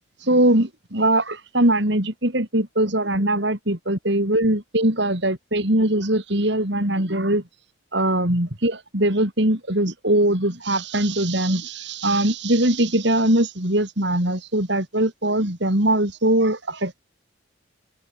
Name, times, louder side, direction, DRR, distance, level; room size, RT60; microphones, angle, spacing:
voice 1, 0.2-7.4 7.9-17.0, right 1 dB, 55° right, 4.1 m, -21 dB
head